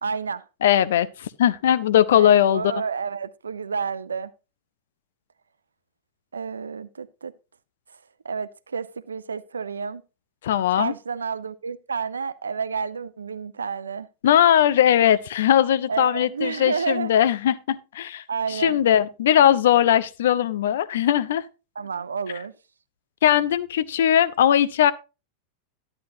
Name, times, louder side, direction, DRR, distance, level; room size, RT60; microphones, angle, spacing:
voice 1, 0.0-0.4 2.1-4.3 6.3-7.3 7.9-8.0 8.2-10.0 10.7-14.1 15.9-17.1 18.3-18.8 21.8-22.5, right 5 dB, 75° right, 0.4 m, -30 dB
voice 2, 0.6-2.6 10.4-10.9 14.2-18.2 18.5-21.4 23.2-24.9, left 10 dB, 60° left, 0.5 m, -19 dB
11.0 x 9.6 x 2.7 m
figure-of-eight pair, 90°, 0 cm